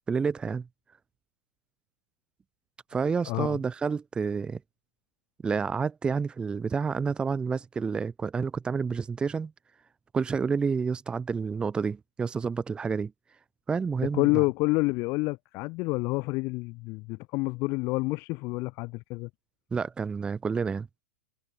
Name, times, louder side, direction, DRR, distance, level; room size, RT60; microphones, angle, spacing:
voice 1, 0.1-0.7 2.9-4.6 5.4-9.5 10.1-13.1 13.7-14.4 19.7-20.9, right 5 dB, 15° right, 1.0 m, -29 dB
voice 2, 3.3-3.6 14.1-19.3, left 24 dB, 40° left, 0.9 m, -28 dB
hypercardioid pair, 125°, 7 cm